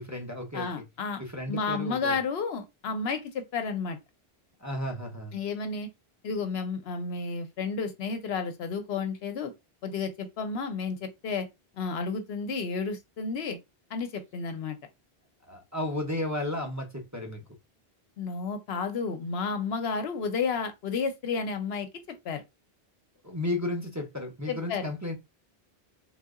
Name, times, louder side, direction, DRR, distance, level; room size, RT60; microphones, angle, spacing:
voice 1, 0.0-0.8 1.2-2.2 4.6-5.4 15.5-17.4 23.2-25.1, left 1 dB, 20° right, 0.6 m, -33 dB
voice 2, 0.5-1.2 1.5-4.0 5.3-5.9 6.2-9.5 9.8-11.5 11.7-13.6 13.9-14.8 18.2-22.4 24.5-24.9, left 5 dB, 80° left, 0.9 m, -32 dB
3.6 x 2.7 x 2.4 m
omnidirectional pair, 1.0 m